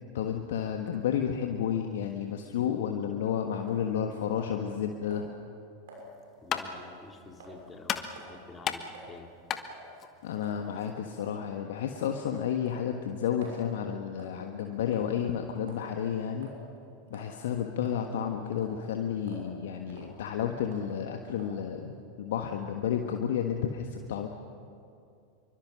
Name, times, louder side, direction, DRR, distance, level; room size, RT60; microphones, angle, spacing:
voice 1, 0.1-5.3 10.2-16.5 17.1-24.3, left 8 dB, 60° left, 4 dB, 1.4 m, -31 dB
sound 1, 3.7-3.9 4.4-4.8 5.1-5.3 5.9-6.1 6.6-6.8 7.4-7.6 8.2-8.4 8.9-9.1 9.7-9.9 10.4-10.6 11.2-11.4 12.0-12.2 12.7-13.6 14.2-14.4 14.9-15.3 15.7-15.9 16.4-16.6 17.1-17.3 17.9-18.3 18.6-18.8 19.3-19.5 19.9-20.1 20.7-20.9 21.4-21.6, right 3 dB, 60° right, 6.7 m, -49 dB
sound 2, 6.0-11.3, left 8 dB, 30° left, 1.4 m, -38 dB
voice 2, 6.4-9.3, left 3 dB, 15° left, 3 dB, 2.7 m, -49 dB
27.0 x 24.5 x 6.4 m, 2.5 s
figure-of-eight pair, 85°, 0 cm